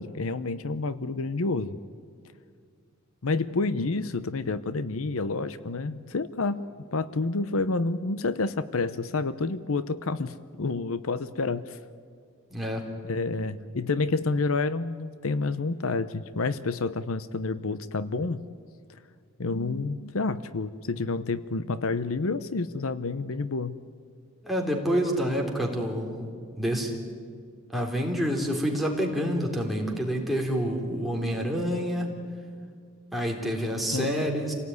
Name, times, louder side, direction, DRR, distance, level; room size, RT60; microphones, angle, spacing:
voice 1, 0.0-1.8 3.2-11.8 13.0-18.4 19.4-23.8 33.9-34.1, left 3 dB, 70° left, 14 dB, 0.7 m, -29 dB
voice 2, 12.5-12.9 24.4-26.3 26.6-27.0 27.7-32.1 33.1-34.5, equal, ahead, -1 dB, 3.5 m, -28 dB
27.5 x 18.0 x 9.6 m, 2.2 s
head